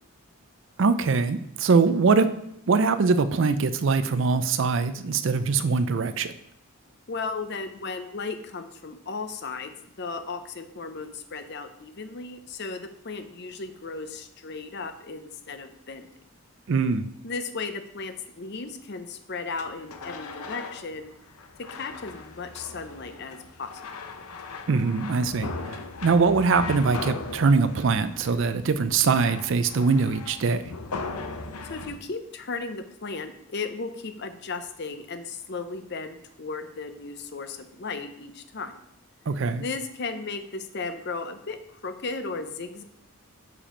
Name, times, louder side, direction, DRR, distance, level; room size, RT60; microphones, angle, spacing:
voice 1, 0.8-2.3 2.7-6.3 16.7-17.1 24.7-30.6 39.3-39.6, right 4 dB, 55° right, 12 dB, 0.4 m, -22 dB
voice 2, 7.1-9.7 10.0-16.1 17.2-21.1 21.7-23.7 31.7-38.8 39.6-42.8, left 4 dB, 50° left, 9 dB, 0.6 m, -35 dB
sound 1, 19.6-32.0, left 3 dB, 90° left, 0.7 m, -38 dB
6.9 x 4.9 x 4.3 m, 0.78 s
head